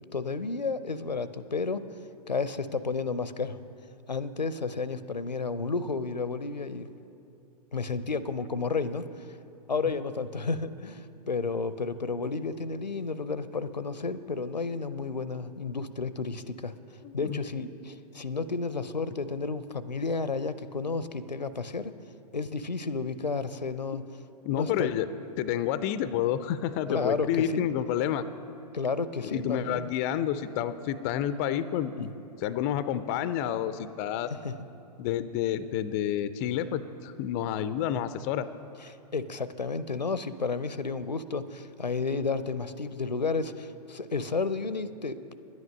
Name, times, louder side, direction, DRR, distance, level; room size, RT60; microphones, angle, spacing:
voice 1, 0.1-1.8 2.3-3.6 4.1-6.9 7.7-9.3 9.7-16.7 17.1-21.9 22.3-24.0 24.5-24.9 26.9-27.6 28.7-29.9 32.0-32.1 34.3-34.5 38.8-45.4, left 4 dB, 90° left, 14 dB, 0.5 m, -32 dB
voice 2, 17.0-17.4 24.4-25.1 25.4-28.2 29.2-32.1 32.4-34.3 35.0-38.5, left 10 dB, 25° left, 13 dB, 0.3 m, -29 dB
10.5 x 9.6 x 6.4 m, 2.7 s
figure-of-eight pair, 110°, 21 cm